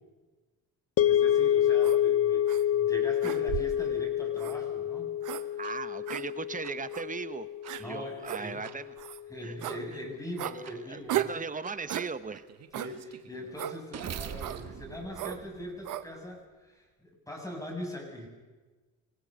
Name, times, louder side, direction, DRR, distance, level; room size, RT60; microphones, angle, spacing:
sound 1, 1.0-9.3, left 11 dB, 50° left, 0.5 m, -28 dB
voice 1, 1.0-5.1 5.5-5.6 7.8-8.6 9.3-11.3 12.7-18.3, equal, 10° left, 1 dB, 7.1 m, -41 dB
sound 2, 1.8-2.0 2.5-2.6 3.2-3.8 4.4-4.6 5.2-5.4 6.1-6.2 6.9-7.1 7.7-7.8 8.2-8.4 9.0-9.2 9.6-9.8 10.4-10.6 11.1-11.4 11.9-12.1 12.7-12.9 13.6-13.8 14.4-14.6 15.1-15.4 15.8-16.1, right 13 dB, 80° right, 0.9 m, -35 dB
voice 2, 5.6-7.5 7.8-8.9 9.4-9.6 10.4-10.6 10.9-12.5, right 4 dB, 25° right, 13 dB, 1.1 m, -38 dB
sound 3, 5.6-5.8 6.6-6.7 7.6-7.8 8.6-8.8 9.6-9.8 10.6-10.8 11.6-11.8 12.3-16.2, right 9 dB, 60° right, 1.4 m, -44 dB
25.0 x 17.5 x 6.4 m, 1.3 s
cardioid pair, 90°, 30 cm